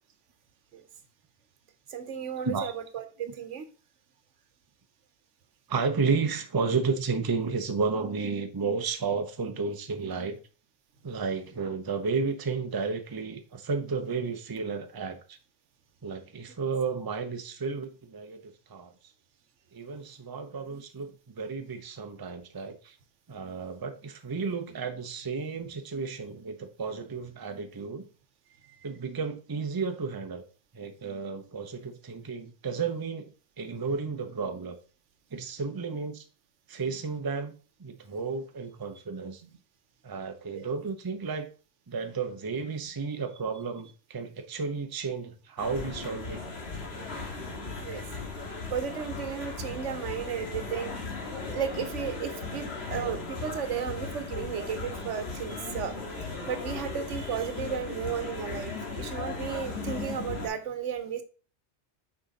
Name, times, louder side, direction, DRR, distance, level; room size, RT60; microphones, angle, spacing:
voice 1, 1.9-3.7 35.9-36.0 36.9-37.0 40.5-40.6 47.0-47.1 47.5-48.0 48.7-50.9 51.5-56.0 56.5-61.2, right 7 dB, 80° right, 10 dB, 1.1 m, -34 dB
voice 2, 5.7-10.4 11.0-15.4 16.0-18.9 19.7-22.9 23.3-28.1 28.8-30.4 30.7-33.3 33.6-34.8 35.3-36.2 36.7-37.5 37.8-39.4 40.0-41.5 41.9-46.4, right 4 dB, 25° right, 6 dB, 0.6 m, -32 dB
sound 1, 45.6-60.5, left 3 dB, 60° left, 1.8 m, -37 dB
6.3 x 4.9 x 4.0 m, 0.37 s
omnidirectional pair, 1.2 m